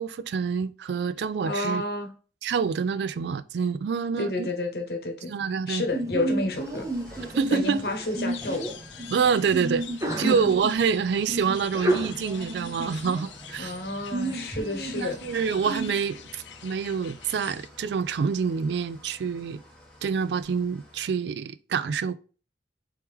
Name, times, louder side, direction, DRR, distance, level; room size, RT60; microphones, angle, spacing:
voice 1, 0.0-1.8 2.4-4.5 5.3-5.8 7.3-7.8 9.1-9.8 10.2-13.8 15.0-19.6 20.0-22.2, right 6 dB, 70° right, 0.3 m, -27 dB
voice 2, 1.4-2.1 4.2-5.3 5.7-6.9 7.5-8.7 10.1-10.5 13.6-15.2, left 2 dB, 60° left, 1.0 m, -30 dB
Sneeze, 5.9-15.9, right 2 dB, 15° right, 0.6 m, -32 dB
Engine starting / Idling, 6.5-21.1, equal, 5° left, 1.2 m, -52 dB
sound 1, 8.2-17.7, left 9 dB, 90° left, 0.6 m, -45 dB
4.6 x 3.2 x 3.5 m
head